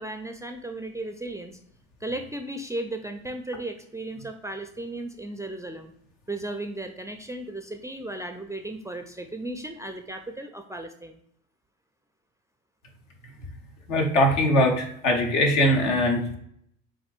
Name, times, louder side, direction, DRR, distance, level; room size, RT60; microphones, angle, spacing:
voice 1, 0.0-1.6 2.0-5.9 6.3-11.2, right 2 dB, 10° right, 5 dB, 0.4 m, -35 dB
voice 2, 13.9-16.4, left 1 dB, 75° left, 2 dB, 1.1 m, -21 dB
7.5 x 2.6 x 2.5 m, 0.69 s
hypercardioid pair, 60°, 37 cm